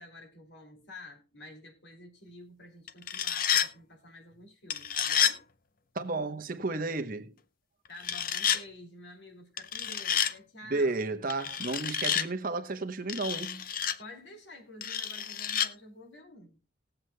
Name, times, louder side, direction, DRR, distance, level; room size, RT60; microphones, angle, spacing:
voice 1, 0.0-5.5 7.9-11.1 14.0-16.6, left 1 dB, 70° left, 2.5 m, -50 dB
sound 1, 2.9-3.7 4.7-5.4 8.0-8.6 9.6-10.3 11.3-12.3 13.1-14.0 14.8-15.7, left 9 dB, 50° left, 0.6 m, -29 dB
voice 2, 5.9-7.3 10.7-13.7, right 3 dB, 45° right, 0.9 m, -32 dB
19.5 x 7.7 x 2.2 m
head